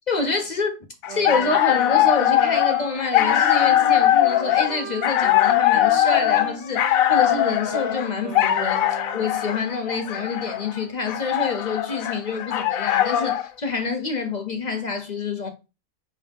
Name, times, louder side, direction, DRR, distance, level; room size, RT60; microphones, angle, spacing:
voice 1, 0.1-0.8 1.1-15.5, left 4 dB, 40° left, 0.6 m, -27 dB
sound 1, 1.0-13.5, left 12 dB, 80° left, 1.0 m, -21 dB
Wind instrument woodwind instrument, 1.1-9.3, right 5 dB, 55° right, 1.0 m, -38 dB
5.0 x 2.9 x 3.4 m
omnidirectional pair, 1.5 m